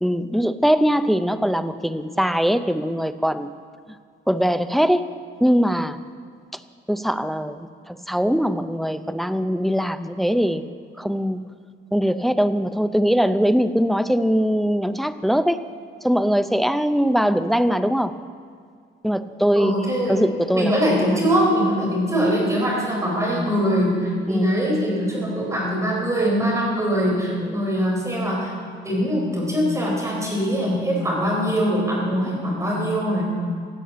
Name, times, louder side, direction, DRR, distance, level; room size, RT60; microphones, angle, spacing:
voice 1, 0.0-3.5 4.3-5.1 5.4-6.0 6.9-10.6 11.0-11.4 11.9-15.6 16.0-18.2 19.0-19.8 20.1-20.7 21.0-21.1 24.3-24.5 27.4-27.5, equal, ahead, 10 dB, 0.4 m, -21 dB
voice 2, 19.5-20.2 20.5-28.5 28.8-33.3, equal, 15° right, -3 dB, 4.4 m, -22 dB
16.0 x 8.3 x 8.5 m, 2.1 s
cardioid pair, 165°, 21 cm